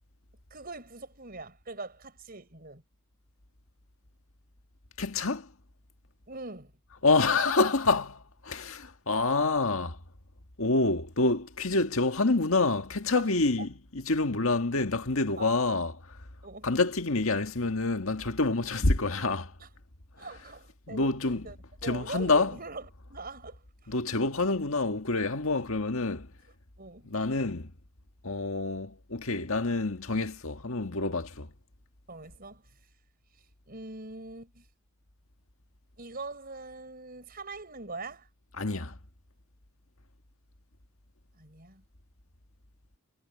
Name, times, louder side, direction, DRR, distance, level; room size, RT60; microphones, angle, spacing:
voice 1, 0.5-2.8 6.3-6.7 13.1-13.3 15.4-15.5 16.4-16.7 19.6-19.7 20.2-21.6 21.8-23.9 26.8-27.1 32.1-32.6 33.7-34.6 36.0-38.3 41.3-41.8, right 3 dB, 40° right, 5.8 m, -42 dB
voice 2, 5.0-5.5 7.0-10.0 10.6-16.0 16.6-19.5 20.9-21.5 21.8-22.5 23.9-26.3 27.1-27.7 28.2-31.5 38.6-39.0, left 3 dB, 65° left, 1.8 m, -27 dB
head